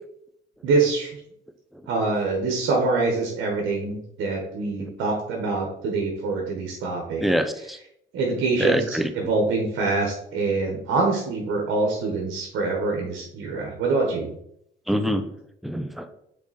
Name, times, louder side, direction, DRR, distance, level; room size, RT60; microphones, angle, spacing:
voice 1, 0.6-1.2 1.9-7.2 8.1-8.8 9.1-14.3, right 3 dB, 85° right, 1 dB, 1.4 m, -25 dB
voice 2, 7.2-7.8 8.6-9.1 14.9-15.3 15.6-16.1, equal, ahead, 8 dB, 0.7 m, -24 dB
6.0 x 4.1 x 4.2 m, 0.74 s
cardioid pair, 90°, 20 cm